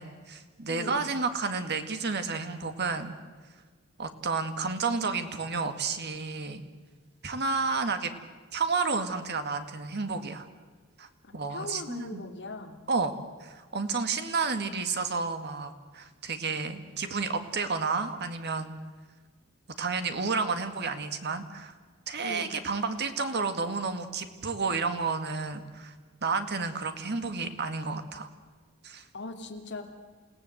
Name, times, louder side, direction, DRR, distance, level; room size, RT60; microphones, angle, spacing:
voice 1, 0.0-3.1 4.0-6.6 7.2-8.1 8.5-10.4 11.0-11.1 11.3-12.2 12.9-13.1 13.4-18.7 19.8-21.7 22.1-25.9 26.2-28.3 28.8-29.0, right 4 dB, 50° right, 8 dB, 1.9 m, -31 dB
voice 2, 0.7-1.1 11.5-12.8 22.2-22.6 29.1-29.8, left 2 dB, 55° left, 2 dB, 2.8 m, -39 dB
28.5 x 17.0 x 7.9 m, 1.4 s
head